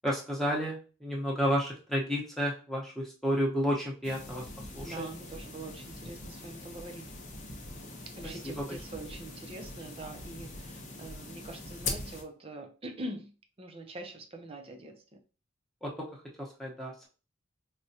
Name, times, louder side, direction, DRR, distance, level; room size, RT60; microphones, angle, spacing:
voice 1, 0.0-4.4 4.7-5.1 8.4-8.8 15.8-15.9 16.4-17.1, equal, ahead, -3 dB, 0.9 m, -31 dB
sound 1, 4.0-12.2, left 2 dB, 35° left, 0.7 m, -42 dB
voice 2, 4.8-7.1 8.2-13.3 13.6-15.2, right 2 dB, 30° right, 5 dB, 0.5 m, -44 dB
4.7 x 2.1 x 2.7 m, 0.34 s
head